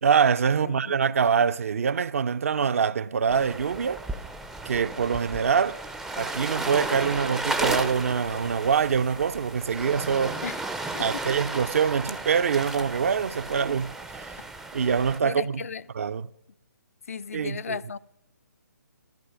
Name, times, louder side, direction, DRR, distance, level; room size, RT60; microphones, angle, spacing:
voice 1, 0.0-4.0 4.6-5.8 6.2-10.4 11.0-14.4 14.7-15.6 15.9-16.3 17.3-17.8, right 6 dB, 50° right, 0.5 m, -24 dB
voice 2, 0.6-1.0 10.4-10.6 10.9-11.0 15.2-15.8 17.1-18.0, left 6 dB, 55° left, 0.4 m, -35 dB
sound 1, 3.3-15.2, right 2 dB, 5° right, 0.4 m, -34 dB
13.0 x 13.0 x 5.8 m
figure-of-eight pair, 135°, 10 cm